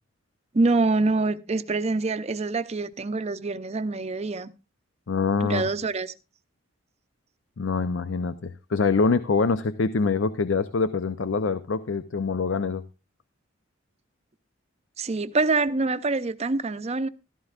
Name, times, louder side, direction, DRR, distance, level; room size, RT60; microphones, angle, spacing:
voice 1, 0.5-4.5 5.4-6.1 15.0-17.1, right 3 dB, 35° right, 0.6 m, -25 dB
voice 2, 5.1-5.7 7.6-12.8, left 4 dB, 70° left, 0.6 m, -25 dB
15.0 x 13.0 x 2.4 m
head